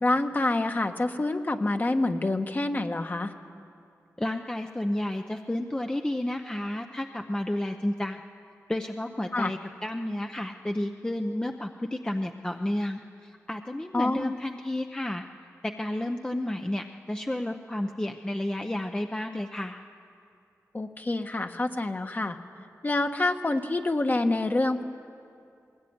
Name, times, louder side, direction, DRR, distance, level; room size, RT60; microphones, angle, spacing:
voice 1, 0.0-3.3 9.3-9.5 13.9-14.3 20.7-22.4 22.8-24.8, left 2 dB, 35° left, 6 dB, 1.3 m, -27 dB
voice 2, 4.2-8.2 8.7-15.2 15.6-19.8, left 1 dB, 15° left, 4 dB, 0.8 m, -31 dB
20.5 x 18.5 x 9.5 m, 2.4 s
wide cardioid pair, 95°, 6 cm